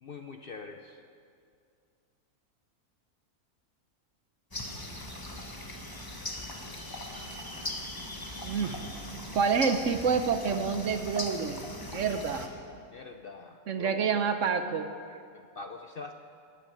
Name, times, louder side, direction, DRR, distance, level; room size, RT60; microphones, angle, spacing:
voice 1, 0.0-1.0 12.9-14.2 15.3-16.1, left 4 dB, 50° left, 5 dB, 0.7 m, -44 dB
sound 1, 4.5-12.5, left 1 dB, 15° left, 1.2 m, -39 dB
voice 2, 8.4-8.8 9.3-11.6 11.9-12.5 13.7-14.9, right 5 dB, 60° right, 8 dB, 1.0 m, -28 dB
13.5 x 9.2 x 8.6 m, 2.3 s
omnidirectional pair, 1.6 m